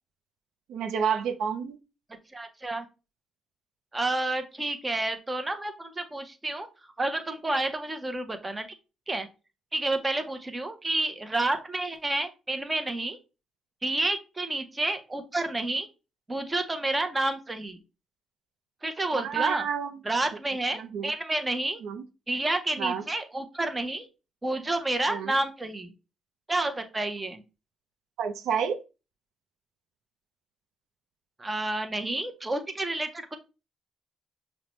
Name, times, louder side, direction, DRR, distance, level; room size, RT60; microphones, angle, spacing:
voice 1, 0.7-1.8 19.1-20.0 20.7-21.1 21.8-22.0 22.8-23.0 25.1-25.4 28.2-28.8, right 7 dB, 80° right, 8 dB, 0.4 m, -29 dB
voice 2, 2.3-2.9 3.9-6.7 7.0-8.7 9.1-9.3 9.7-13.2 13.8-15.9 16.3-17.8 18.8-19.6 20.0-21.8 22.3-24.1 24.4-25.9 26.5-27.4 31.4-33.4, right 2 dB, 20° right, 7 dB, 0.6 m, -30 dB
5.6 x 2.1 x 3.0 m, 0.30 s
cardioid pair, 90°, 0 cm